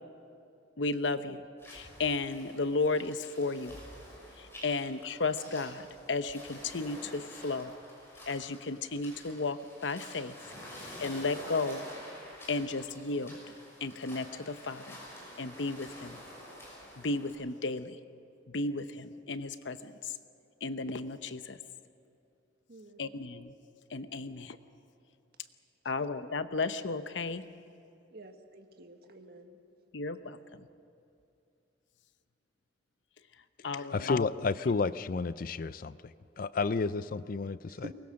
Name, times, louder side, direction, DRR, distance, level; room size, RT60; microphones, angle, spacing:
voice 1, 0.8-3.8 4.4-7.7 8.3-10.4 10.8-11.8 12.5-13.4 13.8-15.0 15.4-16.2 17.0-18.0 18.5-20.1 20.6-21.6 23.0-23.5 23.9-24.6 25.8-27.4 29.9-30.7 33.6-34.1, left 3 dB, 80° left, 11 dB, 0.9 m, -34 dB
sound 1, 1.6-17.3, equal, 15° left, 6.3 m, -49 dB
voice 2, 22.7-23.2 28.1-29.6 37.7-37.9, right 1 dB, 55° right, 6 dB, 1.5 m, -49 dB
voice 3, 33.9-35.9 36.4-37.9, left 4 dB, 50° left, 16 dB, 0.4 m, -31 dB
23.5 x 20.0 x 6.4 m, 2.6 s
head